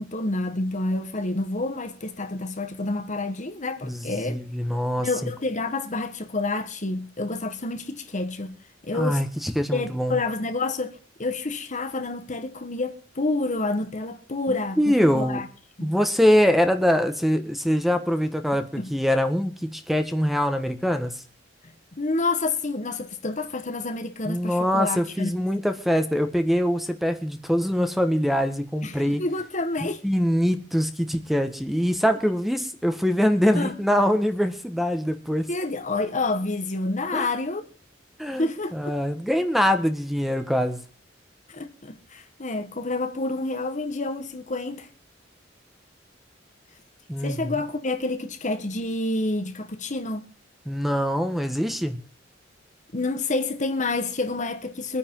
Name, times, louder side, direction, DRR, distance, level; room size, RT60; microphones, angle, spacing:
voice 1, 0.0-4.4 5.0-8.6 8.8-9.2 9.7-15.5 15.8-15.9 18.8-18.9 21.9-25.3 28.8-30.0 33.5-33.8 35.5-37.6 38.4-38.9 41.5-44.9 47.2-50.3 52.9-55.0, left 2 dB, 40° left, 1.4 m, -28 dB
voice 2, 3.8-5.3 8.9-10.2 14.5-15.4 15.8-21.1 24.2-29.2 30.0-35.5 37.1-37.3 38.2-40.8 47.1-47.6 50.6-52.0, equal, ahead, 1.5 m, -23 dB
24.5 x 9.8 x 3.8 m
head